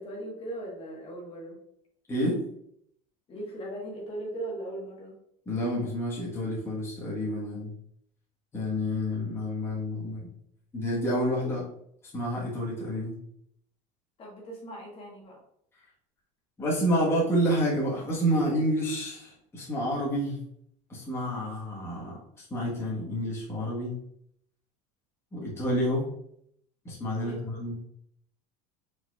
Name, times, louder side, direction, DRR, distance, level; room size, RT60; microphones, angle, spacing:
voice 1, 0.0-1.6 3.3-5.2 11.4-11.5 14.2-15.4 27.2-27.7, right 1 dB, 30° left, -3 dB, 1.3 m, -39 dB
voice 2, 2.1-2.4 5.5-7.7 8.5-10.3 10.7-11.6 12.1-13.1 16.6-20.4 20.9-23.9 25.3-26.0 26.8-27.7, equal, 15° left, -6 dB, 1.3 m, -29 dB
4.3 x 4.3 x 2.4 m, 0.71 s
cardioid pair, 145°, 18 cm